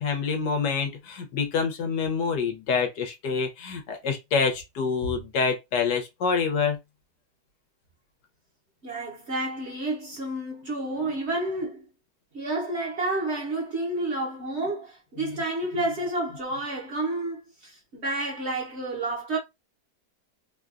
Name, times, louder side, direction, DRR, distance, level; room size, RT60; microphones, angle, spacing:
voice 1, 0.0-6.8, left 5 dB, 75° left, 1.4 m, -26 dB
voice 2, 8.8-11.8 12.3-19.4, right 2 dB, 50° right, 0.9 m, -30 dB
3.3 x 2.2 x 2.4 m
omnidirectional pair, 1.9 m